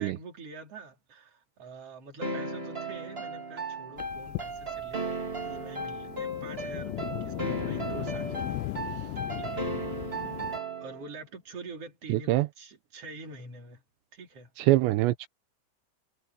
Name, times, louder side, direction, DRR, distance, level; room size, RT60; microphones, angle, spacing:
voice 1, 0.0-9.8 10.8-13.8 14.1-14.5, right 3 dB, 35° right, 4.2 m, -46 dB
sound 1, 2.2-11.1, right 2 dB, 15° right, 2.3 m, -35 dB
sound 2, 4.0-10.6, left 21 dB, 85° left, 2.7 m, -38 dB
voice 2, 12.1-12.5 14.7-15.3, right 17 dB, 85° right, 3.1 m, -23 dB
omnidirectional pair, 5.1 m